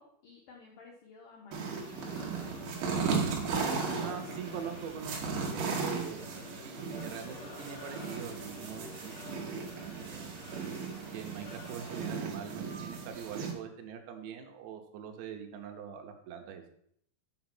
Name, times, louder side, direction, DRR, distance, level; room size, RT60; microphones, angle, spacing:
voice 1, 0.0-3.4, left 4 dB, 80° left, -1 dB, 1.8 m, -55 dB
sound 1, 1.5-13.5, right 5 dB, 60° right, 2.7 m, -36 dB
sound 2, 1.8-12.1, left 3 dB, 55° left, 2.1 m, -49 dB
voice 2, 4.0-5.2 5.5-6.3 6.6-6.7 7.0-9.2 9.9-10.4 11.0-16.6, right 8 dB, 75° right, 4 dB, 3.0 m, -43 dB
8.8 x 5.1 x 6.0 m, 0.66 s
omnidirectional pair, 5.3 m